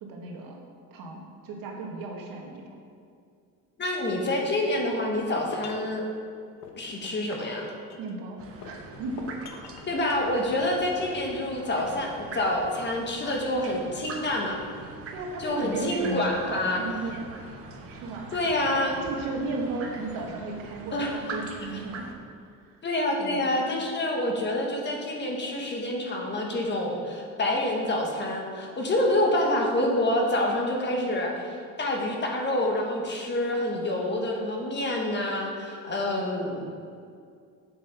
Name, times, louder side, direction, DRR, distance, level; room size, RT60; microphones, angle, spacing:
voice 1, 0.0-0.6 0.9-2.8 8.0-8.4 8.6-9.3 15.1-17.3 17.9-18.3 18.6-22.1 23.2-23.5, right 3 dB, 70° right, 0 dB, 1.5 m, -35 dB
voice 2, 3.8-6.0 6.7-7.7 9.9-14.6 15.4-16.8 18.3-18.9 20.9-21.4 22.8-31.5 31.8-36.6, left 1 dB, 30° left, 0 dB, 1.4 m, -27 dB
sound 1, 4.9-5.9 6.6-8.2 8.6-10.0, left 4 dB, 50° left, 1.0 m, -42 dB
sound 2, 8.4-22.1, right 3 dB, 40° right, 1.1 m, -43 dB
7.6 x 5.6 x 5.6 m, 2.3 s
cardioid pair, 120°, 36 cm